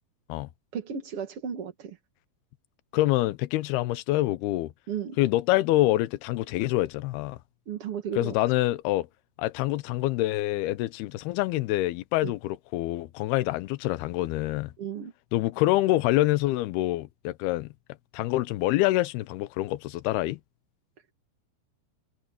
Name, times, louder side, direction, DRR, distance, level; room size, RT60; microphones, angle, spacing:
voice 1, 0.7-2.0 4.9-5.2 7.7-8.3 14.8-15.1, right 8 dB, 50° right, 1.9 m, -34 dB
voice 2, 2.9-4.7 5.2-7.4 8.2-9.1 9.4-14.7 15.3-17.7 18.1-20.4, left 17 dB, 80° left, 2.6 m, -26 dB
omnidirectional pair, 4.9 m